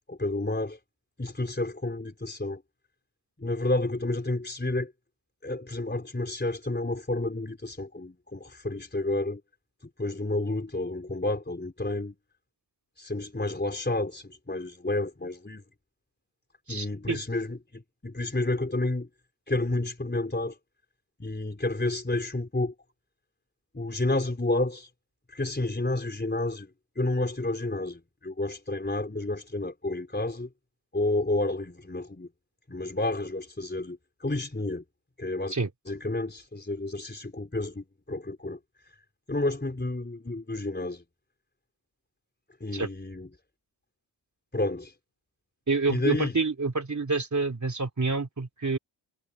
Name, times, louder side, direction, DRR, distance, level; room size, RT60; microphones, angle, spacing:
voice 1, 0.1-0.8 1.2-2.6 3.4-4.9 5.4-9.4 10.0-12.2 13.0-15.6 16.7-19.1 19.5-20.6 21.2-22.7 23.7-24.9 25.3-26.7 27.0-30.5 30.9-32.3 32.7-34.8 35.2-35.5 35.9-38.6 39.3-41.0 42.6-43.3 44.5-44.9 45.9-46.4, left 2 dB, 20° left, 4.2 m, -30 dB
voice 2, 16.7-17.2 35.5-35.7 42.7-42.9 45.7-48.8, right 3 dB, 40° right, 3.1 m, -28 dB
cardioid pair, 55°, 46 cm